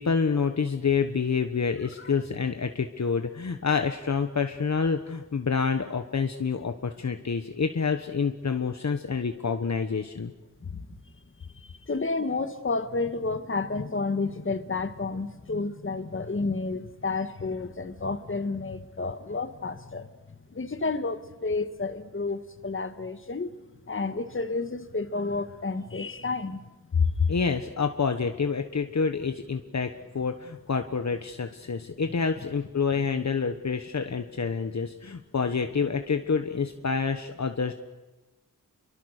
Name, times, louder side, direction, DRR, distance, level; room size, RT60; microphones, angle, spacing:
voice 1, 0.0-10.3 27.0-37.7, left 5 dB, 55° left, 6 dB, 1.3 m, -27 dB
voice 2, 11.9-20.1 20.5-23.5 23.9-26.6 27.3-27.4 32.9-33.0, left 3 dB, 35° left, 9 dB, 1.7 m, -31 dB
28.0 x 23.5 x 6.7 m, 1.1 s
wide cardioid pair, 115°, 34 cm